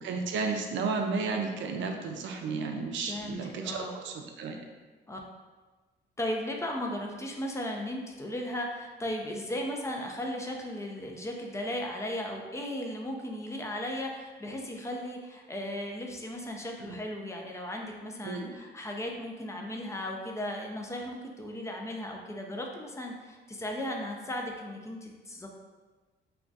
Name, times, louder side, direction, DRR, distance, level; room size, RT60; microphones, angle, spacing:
voice 1, 0.0-4.6 16.8-17.0 18.2-18.6, right 4 dB, 70° right, 4 dB, 0.5 m, -33 dB
voice 2, 3.1-4.0 5.1-5.2 6.2-25.5, left 1 dB, 15° left, 1 dB, 0.4 m, -36 dB
2.3 x 2.3 x 3.8 m, 1.3 s
cardioid pair, 90°, 20 cm